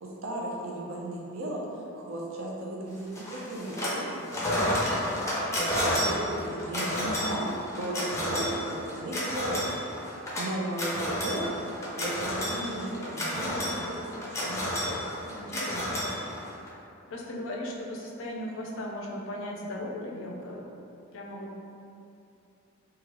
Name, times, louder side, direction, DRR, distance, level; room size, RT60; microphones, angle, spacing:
voice 1, 0.0-4.9 5.8-9.8 10.4-15.3, right 1 dB, 80° right, -2 dB, 0.5 m, -36 dB
sound 1, 3.1-4.0 4.3-16.7, equal, 15° left, 0.5 m, -31 dB
voice 2, 7.0-7.4 15.3-16.1 17.1-20.7 21.1-21.6, left 1 dB, 70° left, -1 dB, 0.4 m, -37 dB
2.9 x 2.3 x 2.9 m, 2.6 s
head